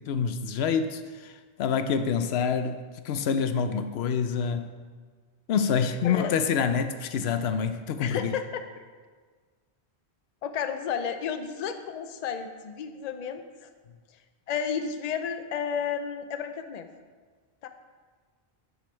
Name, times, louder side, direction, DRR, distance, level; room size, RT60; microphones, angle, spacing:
voice 1, 0.0-1.3 1.6-4.8 5.5-8.4, left 6 dB, 85° left, 0.8 m, -27 dB
voice 2, 8.0-8.7 10.4-13.7 14.5-16.9 17.6-17.7, left 7 dB, 50° left, 0.6 m, -32 dB
9.3 x 6.4 x 4.4 m
omnidirectional pair, 1.0 m